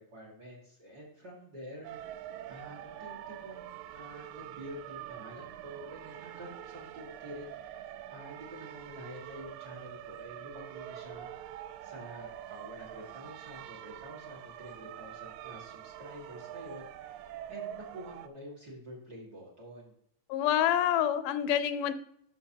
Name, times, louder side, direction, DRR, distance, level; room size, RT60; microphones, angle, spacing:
voice 1, 0.0-11.3 11.8-19.9, equal, 35° right, -3 dB, 2.1 m, -48 dB
sound 1, 1.8-18.3, right 12 dB, 80° right, 1.8 m, -45 dB
voice 2, 20.3-21.9, left 10 dB, 85° left, 12 dB, 2.2 m, -27 dB
11.5 x 6.3 x 2.8 m, 0.72 s
omnidirectional pair, 3.7 m